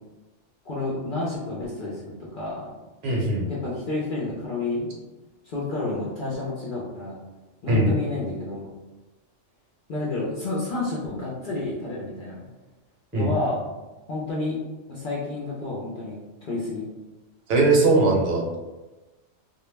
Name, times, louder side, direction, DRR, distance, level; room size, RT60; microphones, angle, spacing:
voice 1, 0.6-2.7 3.5-5.0 5.4-7.2 7.6-8.7 9.9-12.4 13.1-13.6 14.1-14.6 14.9-16.9, left 2 dB, 55° left, -6 dB, 0.6 m, -30 dB
voice 2, 3.0-3.5 7.7-7.9 13.1-13.3 17.5-18.6, right 2 dB, 70° right, -1 dB, 0.9 m, -20 dB
2.2 x 2.1 x 3.1 m, 1.1 s
omnidirectional pair, 1.3 m